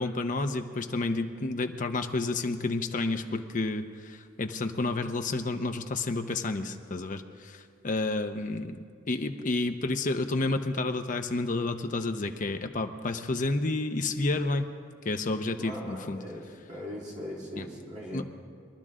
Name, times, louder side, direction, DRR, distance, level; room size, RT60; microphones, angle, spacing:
voice 1, 0.0-14.7 15.0-16.2 17.6-17.7 18.1-18.2, left 2 dB, 40° left, 7 dB, 0.7 m, -30 dB
voice 2, 15.6-16.4 16.7-18.3, equal, 35° right, -3 dB, 2.0 m, -39 dB
22.5 x 12.0 x 3.7 m, 2.1 s
head